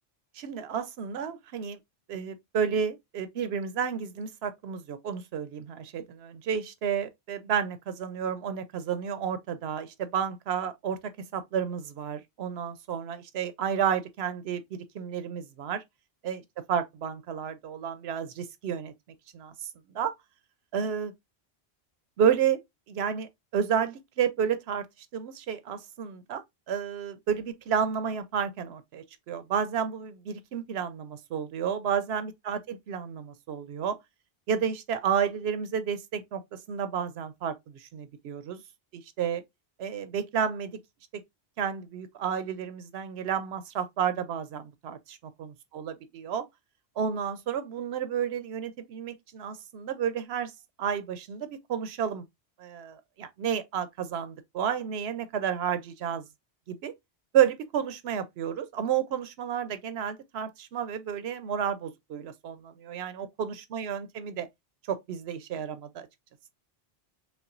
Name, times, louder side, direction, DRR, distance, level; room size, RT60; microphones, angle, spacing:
voice 1, 0.4-1.8 2.1-11.0 11.3-15.8 16.2-16.4 16.7-18.9 19.3-19.7 19.9-20.1 20.7-21.1 22.2-22.6 22.9-24.9 25.1-26.4 26.7-34.0 34.5-38.6 38.9-39.4 39.8-40.8 41.1-41.2 41.6-45.9 46.2-46.5 47.0-50.5 50.8-52.3 52.6-56.2 56.7-56.9 57.3-64.5 64.9-66.1, right 8 dB, 75° right, 0.8 m, -31 dB
5.4 x 2.3 x 2.4 m
omnidirectional pair, 1.1 m